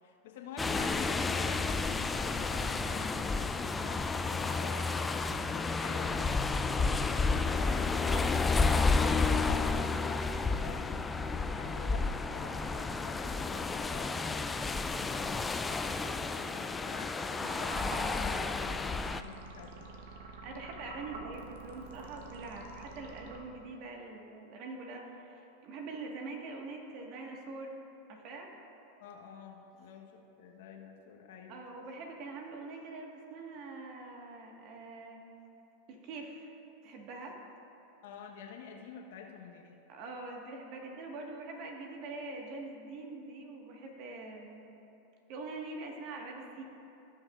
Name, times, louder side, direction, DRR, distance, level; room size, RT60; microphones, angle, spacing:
voice 1, 0.0-8.1 9.3-11.1 11.5-12.0 12.3-15.8 16.4-19.9 29.0-31.6 38.0-39.8, left 6 dB, 70° left, 1 dB, 1.1 m, -48 dB
sound 1, 0.6-19.2, left 4 dB, 15° left, 0.4 m, -31 dB
voice 2, 7.6-8.5 11.5-11.6 20.4-27.7 28.1-28.5 31.5-35.2 35.9-36.5 36.8-37.4 39.9-44.6 45.3-46.6, right 3 dB, 55° right, 1 dB, 1.6 m, -44 dB
sound 2, 17.4-23.9, right 3 dB, 70° right, 1.0 m, -48 dB
17.5 x 6.2 x 2.5 m, 2.8 s
hypercardioid pair, 105°, 0 cm